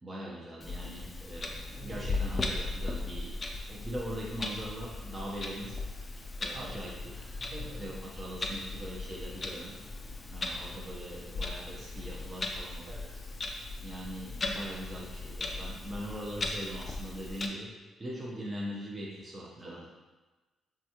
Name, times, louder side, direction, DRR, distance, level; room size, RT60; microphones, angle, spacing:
voice 1, 0.0-3.3 3.7-5.8 6.4-7.1 7.7-9.7 10.3-12.9 13.8-17.7 18.0-19.9, equal, 25° right, -5 dB, 0.6 m, -41 dB
Clock, 0.6-17.5, left 2 dB, 30° left, 0.4 m, -38 dB
voice 2, 1.6-2.1 6.1-6.2 6.5-6.7 7.2-7.9 12.8-13.3 19.6-19.9, right 2 dB, 60° right, -4 dB, 0.9 m, -47 dB
3.4 x 2.3 x 2.8 m, 1.2 s
cardioid pair, 90°, 0 cm